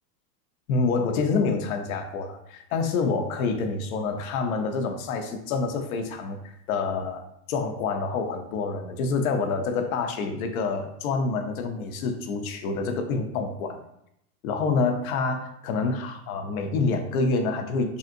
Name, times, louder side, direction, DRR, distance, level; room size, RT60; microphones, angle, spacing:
voice 1, 0.7-13.8 14.4-18.0, left 4 dB, 60° left, 7 dB, 0.5 m, -27 dB
3.5 x 2.6 x 2.5 m, 0.78 s
supercardioid pair, 155°, 49 cm